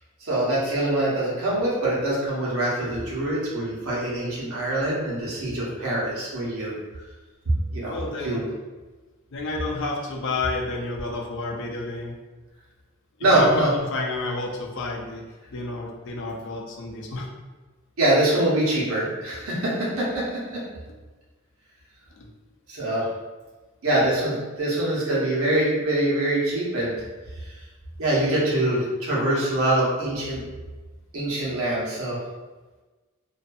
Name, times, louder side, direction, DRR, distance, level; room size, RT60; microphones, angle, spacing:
voice 1, 0.2-6.7 7.4-7.9 8.2-8.5 13.2-13.7 18.0-20.6 22.7-23.1 23.8-26.9 27.4-27.5 28.0-30.4 31.1-32.2, right 1 dB, 90° right, -6 dB, 1.0 m, -24 dB
voice 2, 7.9-8.4 9.3-12.2 13.3-15.2 15.5-17.3 20.9-21.0 22.2-22.3, left 3 dB, 60° left, -1 dB, 0.5 m, -30 dB
2.5 x 2.5 x 2.3 m, 1.2 s
head